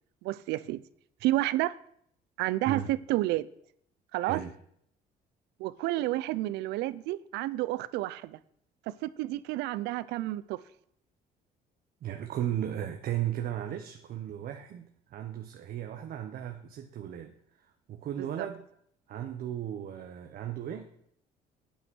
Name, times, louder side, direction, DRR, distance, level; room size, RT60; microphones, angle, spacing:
voice 1, 0.2-0.8 1.2-1.8 2.4-3.5 4.1-4.4 5.6-8.4 8.9-10.6 18.2-18.5, right 16 dB, 90° right, 0.6 m, -30 dB
voice 2, 2.7-3.0 4.2-4.5 12.0-17.3 17.9-18.6 19.1-20.9, right 11 dB, 60° right, 1.0 m, -35 dB
8.7 x 8.4 x 6.3 m
cardioid pair, 110°, 17 cm